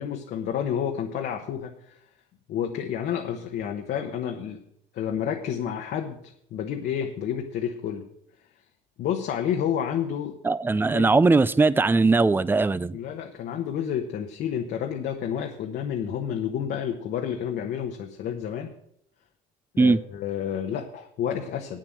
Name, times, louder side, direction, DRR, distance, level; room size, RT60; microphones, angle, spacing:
voice 1, 0.0-2.0 2.5-4.6 4.9-8.0 9.0-10.4 10.9-11.2 12.9-18.7 19.7-21.8, left 9 dB, 70° left, 3 dB, 1.2 m, -30 dB
voice 2, 10.4-13.0 19.8-20.0, right 3 dB, 10° right, 18 dB, 0.4 m, -20 dB
8.9 x 7.6 x 7.7 m, 0.71 s
cardioid pair, 110°, 17 cm